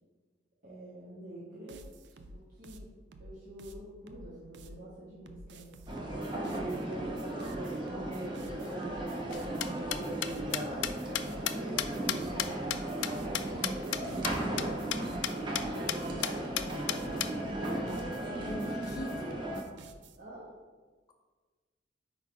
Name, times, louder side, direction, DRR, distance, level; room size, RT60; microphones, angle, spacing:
voice 1, 0.6-1.8 2.5-2.9 3.2-5.7 6.0-7.5 8.3-8.6 10.0-10.5 11.3-15.0 15.4-16.7 18.1-18.5 18.9-19.0 20.2-20.5, equal, 50° right, -10 dB, 1.4 m, -47 dB
sound 1, 1.7-4.8 5.3-20.2, right 1 dB, 75° right, 0.4 m, -51 dB
sound 2, 5.9-19.6, right 1 dB, 25° right, 0.8 m, -36 dB
voice 2, 8.2-8.8 18.3-19.4, left 1 dB, 20° left, 1 dB, 0.5 m, -42 dB
sound 3, 9.3-14.0 14.2-14.3 14.6-14.7 14.9-15.0 15.2-15.6 15.9-16.0 16.2-17.3, left 12 dB, 85° left, 0.3 m, -32 dB
4.7 x 4.1 x 4.8 m, 1.4 s
head